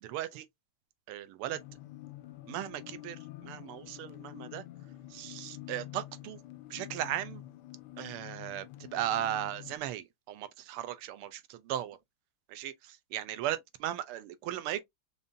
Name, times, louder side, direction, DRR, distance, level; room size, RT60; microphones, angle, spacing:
voice 1, 0.0-0.5 1.1-1.6 2.5-4.6 5.1-6.4 6.7-7.4 8.0-8.6 8.9-12.0 12.5-14.8, right 12 dB, 90° right, 1.6 m, -37 dB
sound 1, 1.5-9.8, left 15 dB, 80° left, 0.9 m, -47 dB
5.2 x 2.7 x 2.5 m
omnidirectional pair, 2.4 m